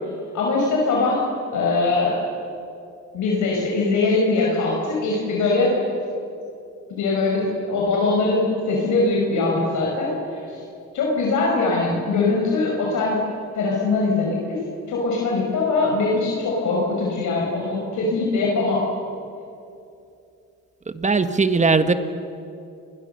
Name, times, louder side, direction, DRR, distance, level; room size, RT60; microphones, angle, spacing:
voice 1, 0.3-1.2 1.5-2.2 3.1-5.8 6.9-10.6 10.9-13.2 13.6-14.6 14.9-18.8, left 3 dB, 75° left, -3 dB, 5.3 m, -22 dB
voice 2, 20.9-21.9, right 4 dB, 25° right, 10 dB, 1.5 m, -19 dB
30.0 x 22.0 x 6.8 m, 2.6 s
cardioid pair, 90°, 30 cm